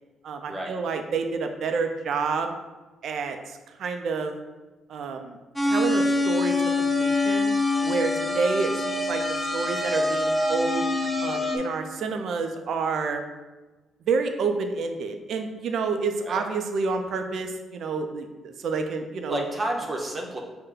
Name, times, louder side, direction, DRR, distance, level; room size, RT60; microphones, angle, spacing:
voice 1, 0.2-2.5 3.0-4.3 4.9-5.4 5.6-7.5 7.8-9.2 9.5-10.8 11.2-13.2 14.1-19.4, right 4 dB, 70° right, 6 dB, 0.4 m, -29 dB
sound 1, 5.6-11.6, left 2 dB, 5° left, 0.6 m, -25 dB
voice 2, 19.3-20.4, right 1 dB, 30° right, 0 dB, 0.8 m, -30 dB
5.6 x 2.1 x 3.7 m, 1.2 s
cardioid pair, 90°, 0 cm